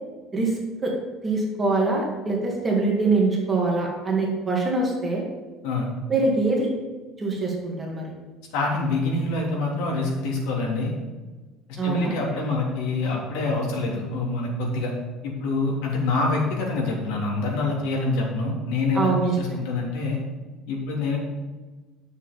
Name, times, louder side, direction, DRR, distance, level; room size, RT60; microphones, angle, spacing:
voice 1, 0.3-0.9 1.2-5.2 6.1-6.7 7.2-8.1 11.8-12.2 18.9-19.5, right 3 dB, 15° right, -1 dB, 1.8 m, -24 dB
voice 2, 8.5-10.9 11.8-14.9 15.2-19.1 19.4-20.2 20.7-21.2, left 3 dB, 85° left, -2 dB, 3.2 m, -26 dB
9.9 x 6.9 x 5.4 m, 1.3 s
cardioid pair, 180°, 0 cm